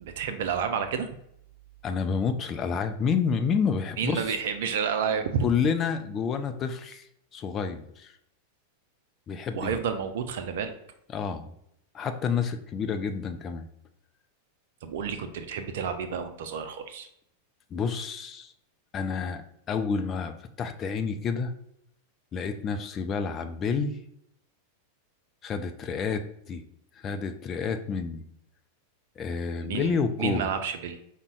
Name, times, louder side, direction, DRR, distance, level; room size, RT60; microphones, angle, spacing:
voice 1, 0.0-1.1 4.0-5.5 9.5-10.7 14.8-17.1 29.6-31.0, right 7 dB, 55° right, 8 dB, 0.4 m, -30 dB
voice 2, 1.8-4.4 5.4-7.1 7.3-8.1 9.3-9.8 11.1-11.5 11.9-13.7 17.7-18.5 18.9-21.5 22.3-24.0 25.4-26.6 26.9-28.2 29.2-30.5, left 6 dB, 25° left, 7 dB, 0.5 m, -29 dB
5.2 x 2.1 x 4.6 m, 0.74 s
figure-of-eight pair, 90°, 0 cm